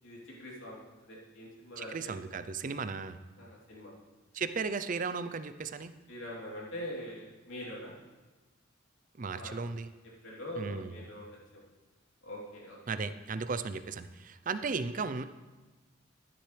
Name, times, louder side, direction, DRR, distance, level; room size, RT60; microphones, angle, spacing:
voice 1, 0.0-2.2 3.4-3.9 6.1-7.9 9.3-9.5 10.2-11.6 12.2-12.8 14.6-14.7, equal, 85° left, -4 dB, 3.3 m, -43 dB
voice 2, 1.8-3.2 4.3-5.9 9.2-9.9 10.6-11.0 12.9-15.2, right 4 dB, 40° right, 12 dB, 0.5 m, -35 dB
13.0 x 10.0 x 3.3 m, 1.3 s
head